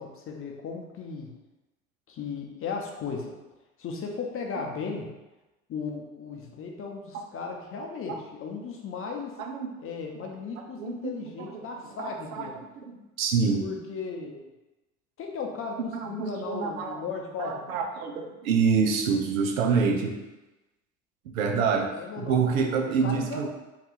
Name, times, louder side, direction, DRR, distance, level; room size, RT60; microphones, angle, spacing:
voice 1, 0.0-1.3 2.1-3.4 3.8-5.1 5.7-9.4 9.8-12.6 13.6-14.5 15.2-17.7 21.9-22.4 23.0-23.5, left 5 dB, 35° left, 1 dB, 0.6 m, -36 dB
voice 2, 9.4-9.7 10.7-11.1 11.4-11.6 12.0-12.5 12.9-13.7 15.9-17.0 17.4-20.1 21.3-23.5, right 5 dB, 80° right, 3 dB, 0.6 m, -27 dB
2.8 x 2.4 x 3.8 m, 1.1 s
hypercardioid pair, 70°, 41 cm